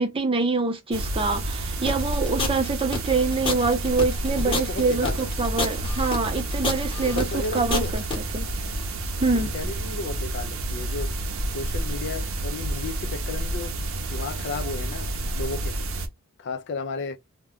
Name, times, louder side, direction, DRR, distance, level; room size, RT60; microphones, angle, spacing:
voice 1, 0.0-8.0 8.3-8.5 9.2-9.5, right 3 dB, 25° right, 0.6 m, -25 dB
sound 1, 0.9-16.1, right 1 dB, 65° right, 0.6 m, -30 dB
sound 2, 1.9-8.2, left 2 dB, 25° left, 0.9 m, -28 dB
voice 2, 4.4-5.5 6.2-6.5 7.0-7.9 9.2-11.1 11.5-13.8 14.1-15.1 15.3-15.8 16.4-17.2, left 3 dB, 50° left, 0.4 m, -33 dB
2.2 x 2.2 x 3.5 m
head